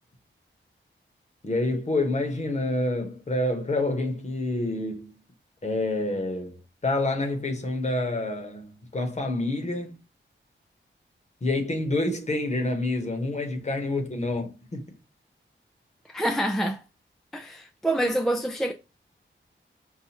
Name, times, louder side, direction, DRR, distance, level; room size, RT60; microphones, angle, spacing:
voice 1, 1.4-5.1 5.6-10.0 11.4-15.0, left 2 dB, 35° left, 1.0 m, -28 dB
voice 2, 16.1-16.8 17.3-18.7, right 1 dB, ahead, 0.3 m, -26 dB
5.6 x 2.4 x 2.9 m
wide cardioid pair, 155°, 21 cm